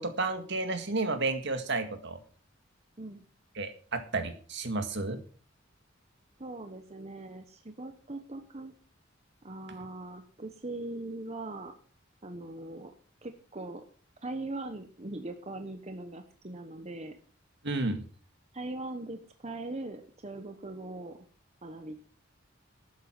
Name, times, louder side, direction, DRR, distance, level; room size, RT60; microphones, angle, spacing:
voice 1, 0.0-2.2 3.6-5.2 17.6-18.0, right 3 dB, 60° right, 8 dB, 1.9 m, -31 dB
voice 2, 6.4-8.7 9.4-11.7 12.2-12.9 13.2-13.8 14.2-17.2 18.5-21.2 21.6-22.0, right 2 dB, 35° right, 7 dB, 1.2 m, -40 dB
12.5 x 9.4 x 6.1 m, 0.42 s
head